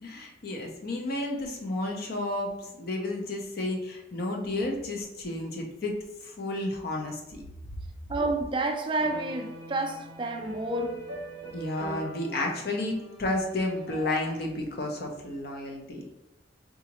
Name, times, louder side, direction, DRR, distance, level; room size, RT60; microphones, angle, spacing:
voice 1, 0.0-7.4 11.5-16.0, left 2 dB, 50° left, 0.6 m, -32 dB
voice 2, 8.1-11.0, right 2 dB, 25° right, 0.3 m, -29 dB
sound 1, 8.9-14.5, right 1 dB, 70° left, 1.2 m, -42 dB
3.9 x 2.4 x 2.9 m
head